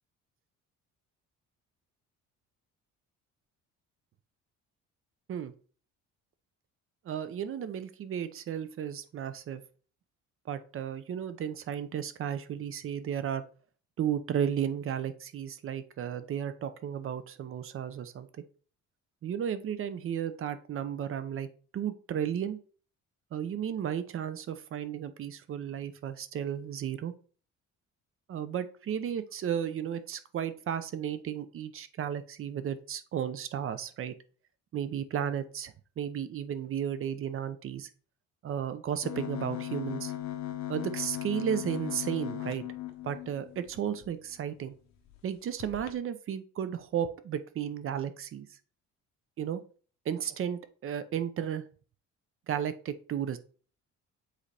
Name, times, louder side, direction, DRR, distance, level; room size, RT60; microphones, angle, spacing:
voice 1, 7.1-9.6 10.5-13.4 14.0-18.3 19.2-21.5 21.7-22.6 23.3-27.1 28.3-34.1 34.7-37.9 38.4-40.1 40.7-42.6 43.0-44.7 45.2-48.5 49.4-49.6 50.1-51.6 52.5-53.4, right 9 dB, 45° right, 12 dB, 0.6 m, -34 dB
sound 1, 39.0-44.1 44.6-44.7 45.0-45.2 45.6-45.9, left 13 dB, 65° left, 1.1 m, -38 dB
7.5 x 4.0 x 3.3 m, 0.41 s
cardioid pair, 135°, 31 cm